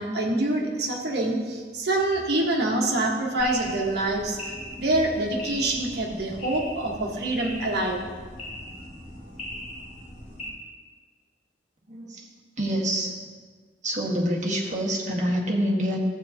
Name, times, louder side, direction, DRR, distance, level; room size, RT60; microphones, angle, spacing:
voice 1, 0.0-4.4 4.8-8.0, right 2 dB, 60° right, -1 dB, 1.5 m, -25 dB
sound 1, 3.4-10.5, left 1 dB, 40° left, 2.4 m, -39 dB
voice 2, 11.9-12.3 12.6-13.3 13.8-16.0, equal, 40° right, -3 dB, 1.7 m, -26 dB
14.0 x 8.3 x 2.9 m, 1.5 s
head